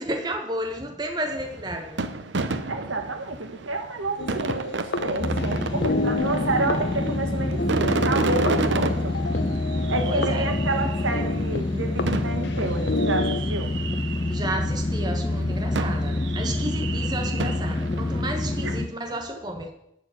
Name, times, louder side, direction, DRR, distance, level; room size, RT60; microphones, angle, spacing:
voice 1, 0.0-2.0 10.1-10.6 14.3-19.7, right 1 dB, 20° right, 1.1 m, -32 dB
sound 1, 1.3-15.0 15.7-18.8, right 3 dB, 65° right, 0.8 m, -32 dB
voice 2, 2.7-4.7 5.0-9.1 9.9-13.7 18.6-19.2, right 2 dB, 85° right, 1.8 m, -29 dB
sound 2, 4.2-13.4, left 2 dB, 60° left, 0.8 m, -31 dB
sound 3, 5.2-18.9, left 2 dB, 25° left, 0.3 m, -27 dB
11.5 x 4.9 x 8.4 m
head